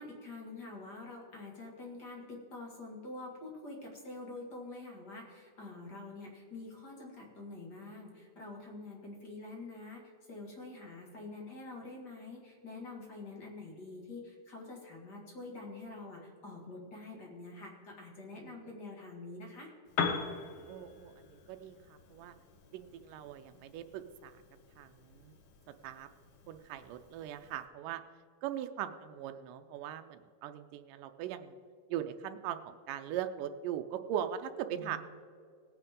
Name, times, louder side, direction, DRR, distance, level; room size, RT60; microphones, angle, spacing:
voice 1, 0.0-10.0 10.3-19.7 34.7-35.0, left 2 dB, 35° left, -1 dB, 2.1 m, -46 dB
Piano, 19.8-27.7, left 5 dB, 80° left, 1.3 m, -42 dB
voice 2, 20.7-22.4 22.7-24.3 24.8-25.3 25.8-26.1 26.5-28.0 28.4-31.6 31.9-35.0, right 10 dB, 80° right, 8 dB, 1.9 m, -40 dB
18.0 x 9.4 x 3.7 m, 2.2 s
omnidirectional pair, 4.3 m